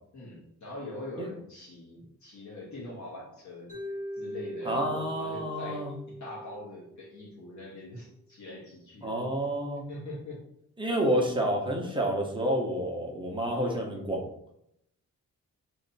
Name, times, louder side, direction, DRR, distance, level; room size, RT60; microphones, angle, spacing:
voice 1, 0.1-3.8 4.2-9.2 9.9-10.5, left 2 dB, 60° left, -5 dB, 1.3 m, -43 dB
Mallet percussion, 3.7-7.8, equal, 25° left, 1.3 m, -41 dB
voice 2, 4.6-5.9 9.0-9.8 10.8-14.2, right 1 dB, 15° right, -1 dB, 0.8 m, -29 dB
3.2 x 2.8 x 4.0 m, 0.74 s
wide cardioid pair, 110°, 33 cm